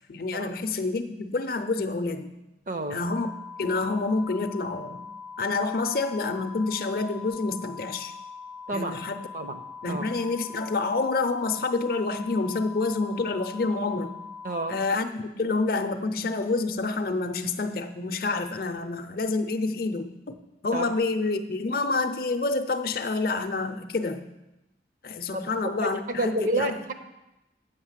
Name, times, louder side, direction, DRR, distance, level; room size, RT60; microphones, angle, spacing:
voice 1, 0.1-2.3 2.9-3.3 3.6-5.1 5.4-8.1 8.7-9.3 9.8-14.2 14.7-20.4 20.6-24.2 25.0-26.8, left 3 dB, 50° left, 8 dB, 0.5 m, -28 dB
voice 2, 2.7-3.0 8.7-9.0 9.3-9.6 9.9-10.1 14.4-14.8 20.7-21.0 25.4-26.9, right 1 dB, 45° right, 7 dB, 0.6 m, -30 dB
sound 1, 3.1-14.9, left 5 dB, 5° right, 0.4 m, -42 dB
7.9 x 5.8 x 7.3 m, 0.97 s
head